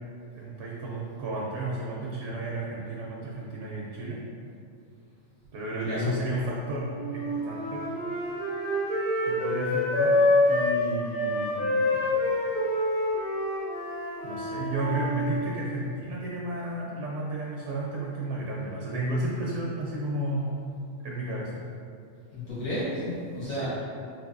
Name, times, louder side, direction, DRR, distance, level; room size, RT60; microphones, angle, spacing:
voice 1, 0.3-4.2 5.5-7.8 9.2-10.2 10.5-12.2 14.2-20.7 21.0-21.6 23.5-23.7, right 2 dB, 70° right, -4 dB, 0.9 m, -33 dB
Wind instrument woodwind instrument, 6.9-10.8 11.1-15.4, left 1 dB, 55° left, 1.9 m, -26 dB
voice 2, 22.3-23.7, left 1 dB, 90° left, -11 dB, 1.6 m, -31 dB
4.5 x 2.5 x 2.4 m, 2.4 s
omnidirectional pair, 1.4 m